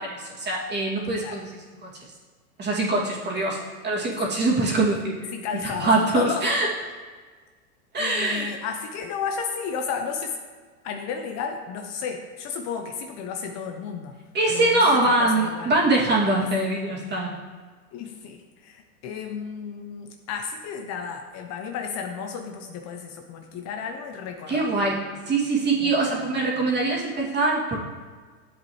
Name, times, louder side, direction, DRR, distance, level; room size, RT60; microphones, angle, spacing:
voice 1, 0.0-1.5 1.8-1.9 2.6-3.6 3.8-5.3 5.8-6.7 7.9-8.5 14.3-17.4 24.5-27.8, right 2 dB, 25° right, -4 dB, 2.4 m, -23 dB
voice 2, 5.3-6.6 8.0-10.4 10.8-14.1 14.5-15.7 17.9-24.7 25.8-25.9, left 6 dB, 40° left, 4 dB, 0.9 m, -33 dB
11.5 x 7.5 x 3.2 m, 1.5 s
hypercardioid pair, 115°, 44 cm